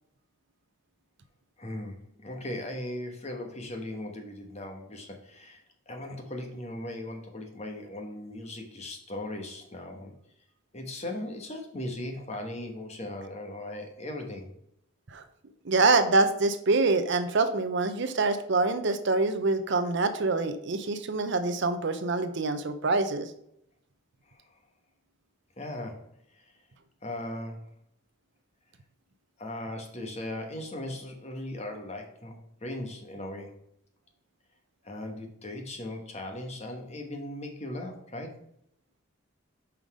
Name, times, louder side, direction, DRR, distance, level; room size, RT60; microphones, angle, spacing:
voice 1, 1.6-10.1 10.7-14.5 24.3-24.5 25.6-26.1 26.4-26.5 27.0-27.7 29.4-33.6 34.8-38.4, left 1 dB, 30° left, 4 dB, 1.2 m, -38 dB
voice 2, 15.6-23.3, right 3 dB, 55° right, 10 dB, 0.6 m, -25 dB
5.8 x 5.3 x 4.8 m, 0.71 s
head